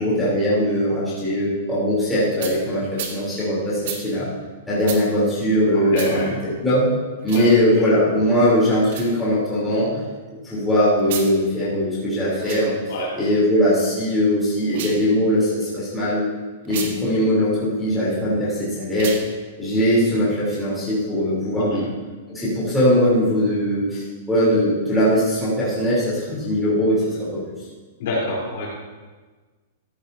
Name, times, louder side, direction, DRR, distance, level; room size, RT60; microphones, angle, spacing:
voice 1, 0.0-4.3 4.7-10.0 10.4-12.7 13.2-16.3 16.6-19.2 19.6-21.8 22.3-27.4, equal, 5° left, -10 dB, 3.5 m, -20 dB
sound 1, 2.4-2.6 2.9-3.2 3.8-4.0 4.8-5.0 5.9-6.1 7.2-7.5 8.8-9.1 11.0-11.3 12.3-12.6 14.6-15.0 16.6-16.9 18.9-19.2, right 7 dB, 50° right, 1.6 m, -31 dB
voice 2, 5.7-6.3 7.3-7.5 12.9-13.1 21.5-21.8 28.0-28.7, left 2 dB, 55° left, -4 dB, 3.9 m, -27 dB
14.0 x 10.5 x 2.8 m, 1.3 s
supercardioid pair, 170°, 0 cm